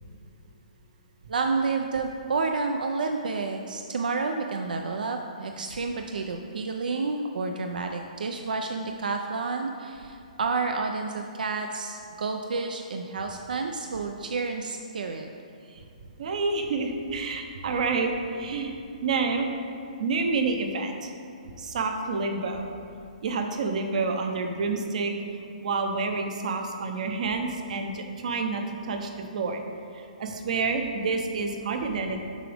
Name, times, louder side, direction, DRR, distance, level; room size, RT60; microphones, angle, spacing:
voice 1, 1.3-15.3, right 4 dB, 85° right, 4 dB, 0.4 m, -30 dB
voice 2, 16.2-18.8 19.0-19.5 20.0-21.1 21.6-22.7 23.2-25.1 25.6-29.6 29.9-32.3, right 4 dB, 60° right, 5 dB, 0.8 m, -28 dB
7.4 x 4.8 x 3.4 m, 2.7 s
hypercardioid pair, 155°, 4 cm